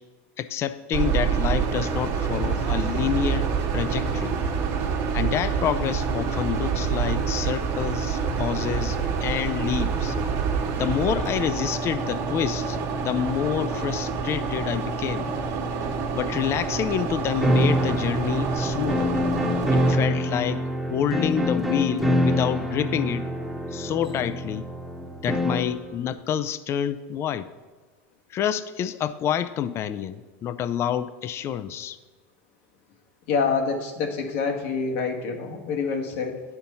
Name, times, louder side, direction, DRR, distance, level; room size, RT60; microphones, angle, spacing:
voice 1, 0.4-4.4 5.1-10.2 10.8-15.3 16.1-19.1 19.7-20.6 20.9-23.3 23.7-24.7 25.2-27.5 28.3-32.0, left 9 dB, 40° left, 14 dB, 0.4 m, -28 dB
sound 1, 0.9-19.9, right 5 dB, 55° right, 1.3 m, -27 dB
sound 2, 17.4-25.8, equal, 5° right, 1.0 m, -25 dB
voice 2, 33.3-36.4, left 5 dB, 70° left, 2 dB, 1.4 m, -26 dB
10.0 x 4.4 x 5.4 m, 1.3 s
supercardioid pair, 110°, 7 cm